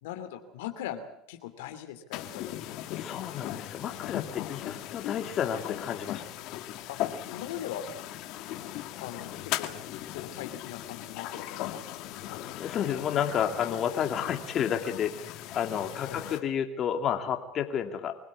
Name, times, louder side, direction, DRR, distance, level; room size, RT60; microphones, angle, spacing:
voice 1, 0.0-2.5 6.9-7.0 7.3-7.9 8.5-8.7 9.0-9.7 10.1-12.0 12.3-12.4 16.0-16.4, left 10 dB, 90° left, 6 dB, 2.8 m, -40 dB
sound 1, 2.1-16.4, left 13 dB, 65° left, 2.0 m, -38 dB
voice 2, 2.9-6.2 12.5-18.1, left 8 dB, 45° left, 5 dB, 2.6 m, -31 dB
25.0 x 16.5 x 8.5 m, 0.78 s
supercardioid pair, 100°, 0 cm